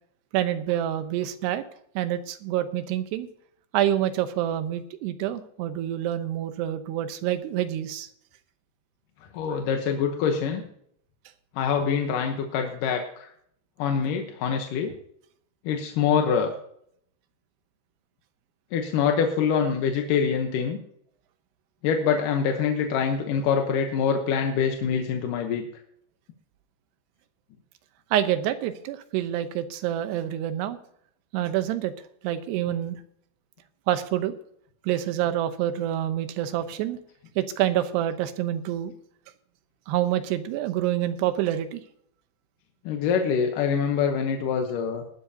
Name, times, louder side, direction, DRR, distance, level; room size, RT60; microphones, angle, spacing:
voice 1, 0.3-1.6 2.0-3.3 3.7-8.1 9.5-9.6 28.1-30.8 31.3-31.9 32.2-33.0 33.9-34.3 34.8-37.0 37.4-38.9 39.9-41.8, right 12 dB, 90° right, 10 dB, 3.0 m, -27 dB
voice 2, 9.3-10.6 11.6-13.3 13.8-14.9 15.7-16.5 18.7-20.8 21.8-25.6 42.9-45.0, left 6 dB, 70° left, 3 dB, 2.3 m, -25 dB
18.5 x 12.0 x 2.8 m, 0.67 s
omnidirectional pair, 4.7 m